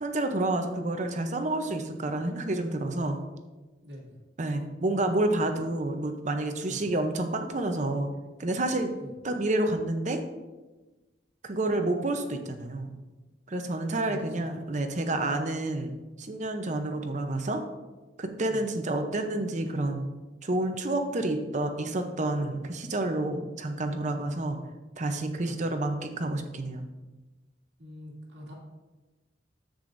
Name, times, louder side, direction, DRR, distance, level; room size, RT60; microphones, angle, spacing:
voice 1, 0.0-3.2 4.4-8.1 8.4-8.9 9.2-10.2 11.4-13.0 13.5-17.6 18.2-20.0 20.4-24.6 25.0-26.9, right 2 dB, 40° right, 6 dB, 0.7 m, -29 dB
voice 2, 3.8-4.2 6.6-6.8 9.0-9.1 14.0-14.5 18.5-18.6 24.5-24.6 25.4-25.6 27.8-28.5, equal, 65° right, -3 dB, 2.3 m, -45 dB
10.5 x 7.7 x 2.6 m, 1.2 s
head